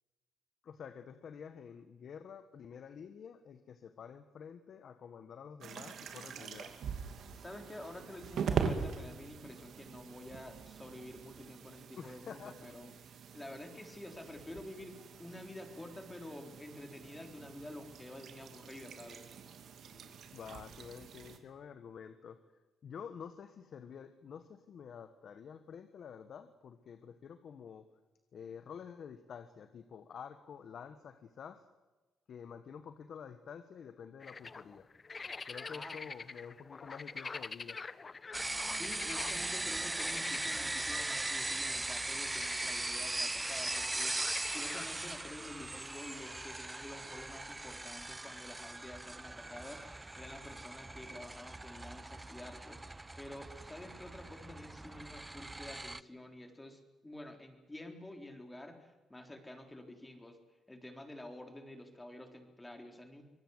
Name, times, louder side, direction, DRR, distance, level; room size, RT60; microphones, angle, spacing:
voice 1, 0.6-6.7 12.0-12.7 19.8-22.4 22.8-27.9 28.3-31.6 32.3-34.9 35.5-37.8, left 7 dB, 60° left, 10 dB, 1.5 m, -49 dB
sound 1, 5.6-21.4, right 6 dB, 65° right, 2.7 m, -43 dB
voice 2, 7.4-19.3 35.7-36.1 38.8-52.8 53.2-60.4 60.7-63.2, left 1 dB, 15° left, 5 dB, 3.9 m, -49 dB
sound 2, 34.2-39.4 39.9-44.9, left 4 dB, 30° left, 0.9 m, -46 dB
sound 3, 38.3-56.0, right 2 dB, 15° right, 0.7 m, -39 dB
24.5 x 19.0 x 8.0 m, 1.2 s
cardioid pair, 90°, 0 cm